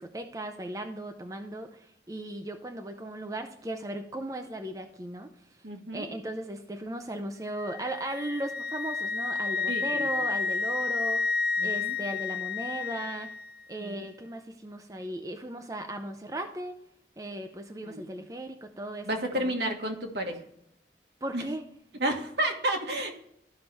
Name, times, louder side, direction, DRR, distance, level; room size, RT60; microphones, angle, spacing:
voice 1, 0.0-5.3 5.9-11.3 11.6-13.3 13.7-16.8 17.2-19.5 21.2-21.6, right 1 dB, 20° right, 5 dB, 0.6 m, -37 dB
voice 2, 5.6-6.1 9.7-10.1 11.6-12.0 13.8-14.1 17.8-18.1 19.0-20.4 21.3-21.4 22.0-23.1, right 1 dB, 75° right, 2 dB, 1.6 m, -31 dB
Wind instrument woodwind instrument, 7.6-13.5, left 4 dB, 60° left, 0.5 m, -31 dB
13.0 x 5.7 x 3.3 m, 0.76 s
head